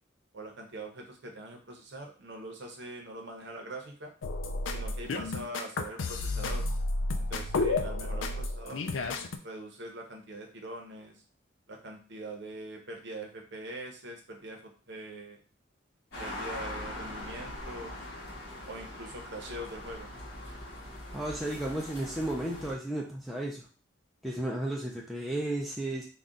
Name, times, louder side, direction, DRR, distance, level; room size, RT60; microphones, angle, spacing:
voice 1, 0.3-4.1 4.7-6.7 7.2-8.8 9.4-11.2 11.7-15.4 16.2-18.1 18.7-20.1, right 1 dB, 65° right, 2 dB, 0.9 m, -43 dB
sound 1, 4.2-9.4, left 2 dB, 80° left, 0.5 m, -31 dB
sound 2, 16.1-22.7, left 1 dB, 60° left, 1.7 m, -42 dB
voice 2, 21.1-23.7 24.2-26.0, right 1 dB, ahead, -3 dB, 0.5 m, -33 dB
4.0 x 2.4 x 3.7 m, 0.38 s
head